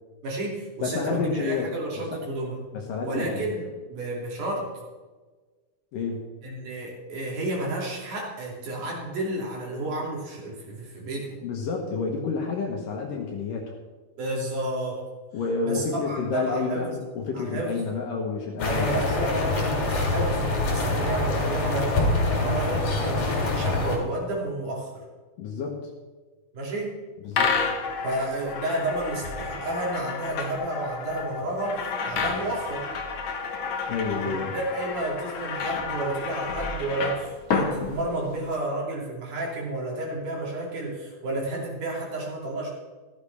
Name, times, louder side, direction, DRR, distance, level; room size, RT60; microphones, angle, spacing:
voice 1, 0.2-2.7 3.0-4.7 6.4-11.3 14.2-15.0 15.6-17.0 17.3-17.8 18.6-22.0 22.3-25.0 26.5-27.0 28.0-32.9 34.1-42.7, right 2 dB, 60° right, -3 dB, 4.1 m, -31 dB
voice 2, 0.8-1.7 2.7-3.5 5.9-6.4 11.4-13.7 15.3-19.1 25.4-25.9 27.2-27.5 33.9-34.5, left 4 dB, 70° left, 0 dB, 2.7 m, -29 dB
sound 1, 18.6-24.0, left 2 dB, 50° left, 3.2 m, -25 dB
sound 2, 27.3-38.6, left 5 dB, 90° left, 1.1 m, -30 dB
14.0 x 13.5 x 3.4 m, 1.3 s
omnidirectional pair, 4.2 m